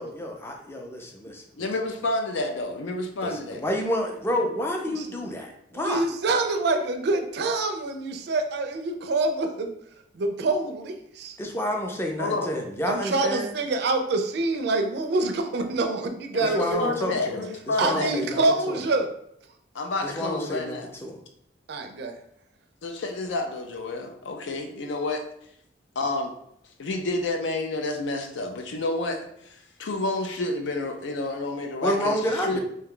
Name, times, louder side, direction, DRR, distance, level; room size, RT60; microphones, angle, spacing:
voice 1, 0.0-1.7 3.2-6.0 11.4-13.5 16.4-18.4 18.7-18.8 20.0-20.8 21.0-21.2 31.8-32.6, equal, 15° left, 2 dB, 0.4 m, -29 dB
voice 2, 1.6-3.6 12.2-12.5 16.3-18.1 19.7-20.9 22.8-25.2 26.0-26.3 26.8-32.6, left 2 dB, 85° left, 4 dB, 0.5 m, -29 dB
voice 3, 5.7-9.7 10.1-11.4 12.9-17.2 17.8-19.1 21.7-22.2, right 3 dB, 65° right, 7 dB, 0.4 m, -26 dB
2.7 x 2.2 x 3.7 m, 0.72 s
head